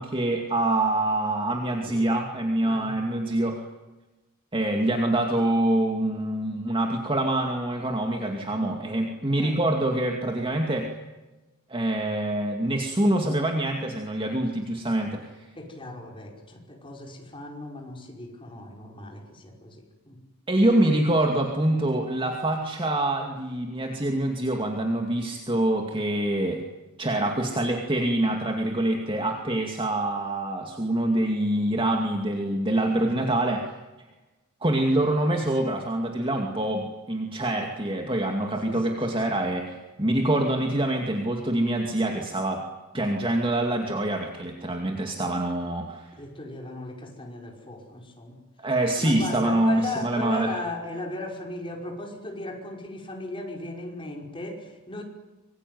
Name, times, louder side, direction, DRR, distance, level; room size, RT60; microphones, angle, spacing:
voice 1, 0.0-3.6 4.5-10.9 11.7-15.5 20.5-26.6 27.0-33.7 34.6-42.6 42.9-46.1 48.6-50.5, right 1 dB, 25° right, 2 dB, 2.4 m, -25 dB
voice 2, 2.6-3.0 9.4-9.6 15.5-20.2 38.6-39.2 46.2-48.4 49.0-55.0, left 2 dB, 25° left, 1 dB, 5.4 m, -37 dB
26.0 x 23.0 x 9.5 m, 1.1 s
head